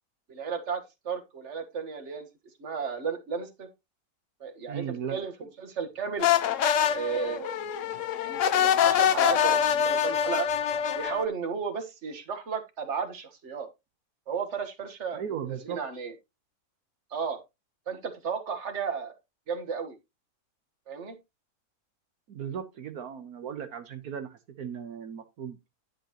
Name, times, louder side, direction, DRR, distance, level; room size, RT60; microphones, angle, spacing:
voice 1, 0.3-2.3 2.6-3.7 4.4-4.8 5.1-6.3 6.9-7.7 8.2-10.5 10.9-13.7 14.3-15.2 15.5-16.1 17.1-17.4 17.9-19.1 19.5-20.0 20.9-21.1, right 6 dB, 50° right, 1.7 m, -34 dB
voice 2, 4.7-5.2 15.1-15.8 22.3-25.6, right 8 dB, 80° right, 1.5 m, -37 dB
sound 1, 6.2-11.2, left 9 dB, 65° left, 0.9 m, -25 dB
10.5 x 7.6 x 3.0 m
omnidirectional pair, 1.6 m